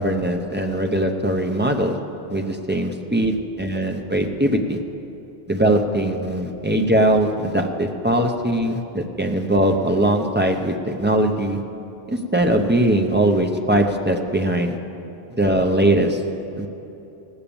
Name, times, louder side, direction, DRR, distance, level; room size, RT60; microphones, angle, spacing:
voice 1, 0.0-1.9 2.3-4.8 5.5-11.6 12.1-14.8 15.4-16.2 16.6-16.7, right 1 dB, 10° right, 3 dB, 0.6 m, -20 dB
17.5 x 7.2 x 7.0 m, 2.9 s
omnidirectional pair, 1.1 m